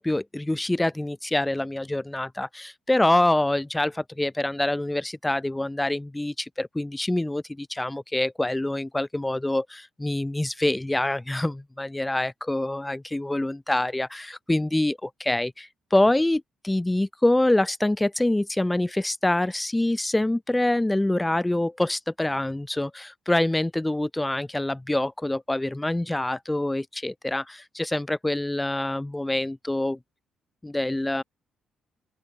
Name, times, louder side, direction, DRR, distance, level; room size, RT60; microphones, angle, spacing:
voice 1, 0.0-30.0 30.6-31.2, left 1 dB, 10° left, 2.7 m, -25 dB
open air
cardioid pair, 90°, 0 cm